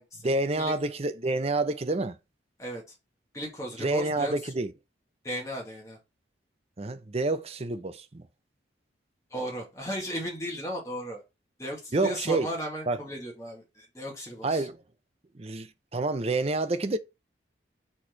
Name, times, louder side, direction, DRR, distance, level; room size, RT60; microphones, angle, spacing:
voice 1, 0.2-2.2 3.8-4.7 6.8-8.2 11.9-12.5 12.9-13.0 14.4-14.8 15.4-17.0, right 2 dB, 35° right, 0.6 m, -28 dB
voice 2, 3.3-4.3 5.2-6.0 9.3-11.2 11.6-14.7, equal, 15° left, 2.2 m, -35 dB
4.7 x 4.4 x 4.6 m
head